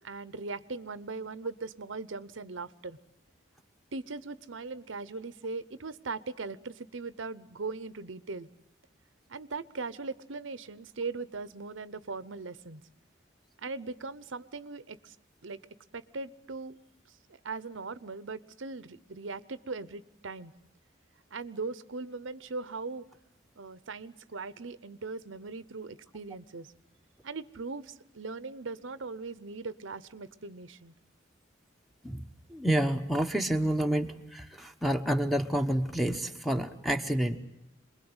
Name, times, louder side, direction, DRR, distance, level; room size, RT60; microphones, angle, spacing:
voice 1, 0.0-3.0 3.9-8.5 9.3-12.8 13.6-15.2 15.4-15.6 15.9-16.8 17.3-20.5 21.3-23.1 23.6-26.7 27.2-30.9, right 4 dB, 85° right, 16 dB, 0.9 m, -39 dB
voice 2, 32.0-37.4, right 1 dB, ahead, 2 dB, 1.1 m, -29 dB
27.0 x 21.5 x 8.0 m, 0.82 s
head